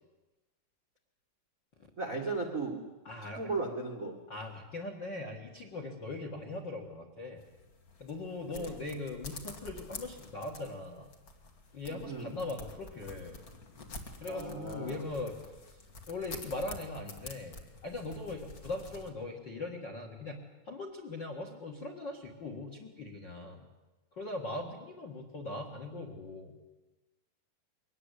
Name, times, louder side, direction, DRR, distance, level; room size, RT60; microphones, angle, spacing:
voice 1, 2.0-2.8 3.3-4.2 8.5-8.8 11.9-12.3 14.2-15.1, right 3 dB, 40° right, 3 dB, 1.1 m, -36 dB
voice 2, 3.0-3.4 4.3-7.4 8.0-11.1 11.7-13.4 14.2-15.3 16.1-20.4 20.7-23.6 24.1-26.6, left 2 dB, 50° left, 3 dB, 1.4 m, -40 dB
sound 1, 7.4-19.1, left 2 dB, 80° left, 0.8 m, -49 dB
23.0 x 18.5 x 8.3 m, 1.1 s
omnidirectional pair, 5.0 m